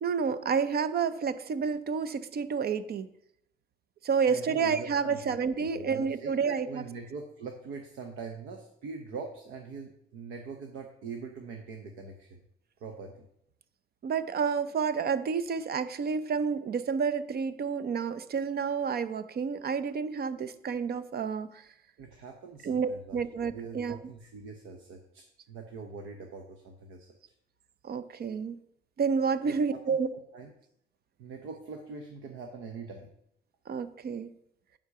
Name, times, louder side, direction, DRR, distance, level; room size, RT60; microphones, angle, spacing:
voice 1, 0.0-3.1 4.0-6.9 14.0-21.6 22.6-24.0 27.8-28.6 29.0-30.1 33.7-34.3, right 6 dB, 50° right, 14 dB, 0.7 m, -30 dB
voice 2, 4.3-12.4 12.8-13.3 22.0-27.1 29.5-30.0 30.3-30.5 31.2-33.1, right 4 dB, 85° right, 4 dB, 0.9 m, -43 dB
9.6 x 3.8 x 6.7 m, 0.76 s
cardioid pair, 90°, 20 cm